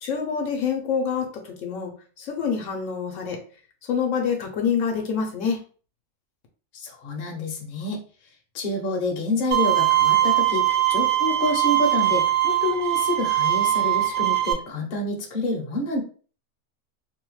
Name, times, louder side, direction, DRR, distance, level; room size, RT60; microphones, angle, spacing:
voice 1, 0.0-1.9 2.2-3.4 3.9-5.6, left 6 dB, 75° left, 2 dB, 1.0 m, -26 dB
voice 2, 6.7-8.0 8.5-16.0, left 2 dB, 50° left, 1 dB, 0.7 m, -28 dB
Bowed string instrument, 9.5-14.5, right 14 dB, 50° right, 0.7 m, -21 dB
2.7 x 2.1 x 3.0 m, 0.40 s
omnidirectional pair, 1.4 m